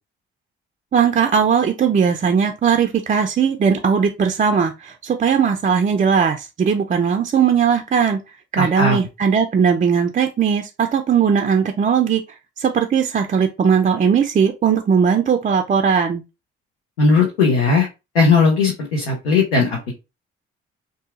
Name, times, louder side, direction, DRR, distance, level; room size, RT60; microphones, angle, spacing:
voice 1, 0.9-8.2 8.5-12.2 12.6-16.2, right 6 dB, 25° right, 5 dB, 0.3 m, -18 dB
voice 2, 8.6-9.0 17.0-17.9 18.1-19.9, left 4 dB, 90° left, -2 dB, 0.7 m, -17 dB
2.7 x 2.4 x 2.3 m, 0.26 s
hypercardioid pair, 45°, 31 cm